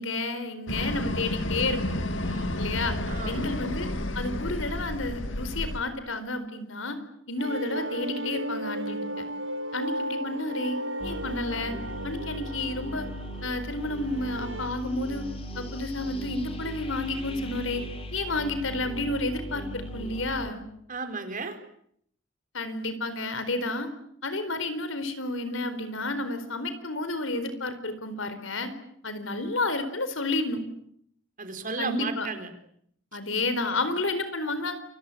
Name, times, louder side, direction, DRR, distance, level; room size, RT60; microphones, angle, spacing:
voice 1, 0.0-2.0 2.6-3.0 3.3-3.9 4.1-7.0 7.3-9.2 9.7-11.8 12.0-13.1 13.4-15.3 15.5-17.8 18.1-20.6 22.5-23.9 24.2-28.7 29.0-30.6 31.8-32.3 33.1-34.7, left 2 dB, 85° left, 11 dB, 4.4 m, -31 dB
sound 1, 0.7-5.8, left 1 dB, 70° left, 2.2 m, -31 dB
voice 2, 2.2-2.8 3.1-3.6 9.8-10.0 20.9-21.6 31.4-32.5, right 4 dB, 45° right, 7 dB, 4.3 m, -35 dB
sound 2, 7.4-14.7, right 1 dB, 65° right, 2.5 m, -35 dB
sound 3, 11.0-20.5, equal, 30° left, 3.8 m, -38 dB
29.0 x 22.0 x 8.7 m, 0.71 s
head